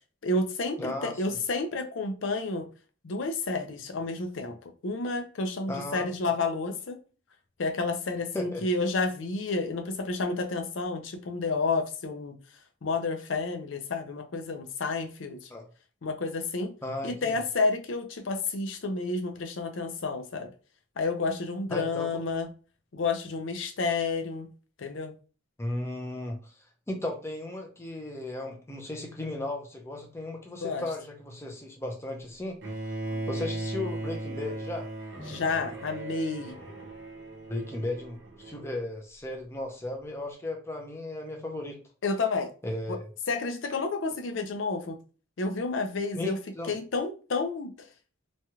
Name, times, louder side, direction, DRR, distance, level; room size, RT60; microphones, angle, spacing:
voice 1, 0.2-2.7 3.0-7.0 7.6-12.3 12.8-15.5 16.0-16.7 17.0-20.5 21.0-22.5 22.9-24.5 24.8-25.1 30.6-30.8 33.0-33.2 35.3-36.6 42.0-42.5 42.9-43.0 43.3-45.0 45.4-46.4 46.7-47.9, left 3 dB, 65° left, 0.5 m, -30 dB
voice 2, 0.8-1.2 5.7-6.1 8.3-8.6 15.5-15.6 16.8-17.4 21.7-22.1 25.6-26.5 26.9-32.6 33.3-34.9 37.5-41.8 42.6-43.1 46.1-46.7, left 2 dB, 15° left, 0.6 m, -35 dB
Bowed string instrument, 32.6-38.7, right 2 dB, 60° right, 1.0 m, -37 dB
3.1 x 2.3 x 2.8 m
head